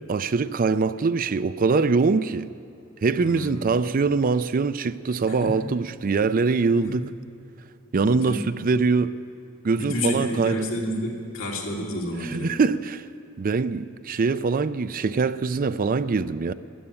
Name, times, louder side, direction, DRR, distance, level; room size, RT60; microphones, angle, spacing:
voice 1, 0.1-2.5 3.0-7.1 7.9-9.1 9.6-10.7 12.2-13.1 13.4-16.5, right 4 dB, 45° right, 0.4 m, -23 dB
voice 2, 3.2-3.7 5.3-5.7 6.8-7.0 8.0-8.5 9.7-12.6, left 1 dB, 85° left, 2.7 m, -30 dB
12.5 x 10.0 x 9.8 m
head